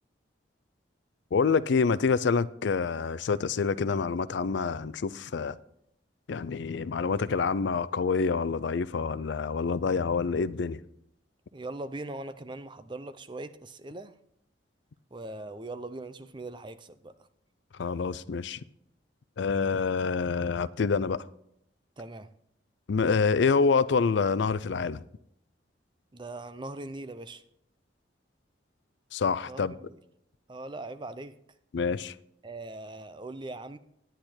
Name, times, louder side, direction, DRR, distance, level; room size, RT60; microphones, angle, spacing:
voice 1, 1.3-5.6 6.3-10.8 17.8-18.6 19.4-21.2 22.9-25.0 29.1-29.7 31.7-32.1, left 5 dB, 70° left, 0.4 m, -27 dB
voice 2, 11.5-14.2 15.1-17.3 19.7-19.8 22.0-22.3 26.1-27.4 29.5-30.0 30.5-31.4 32.4-33.8, right 2 dB, 25° right, 0.5 m, -40 dB
10.0 x 10.0 x 4.4 m
head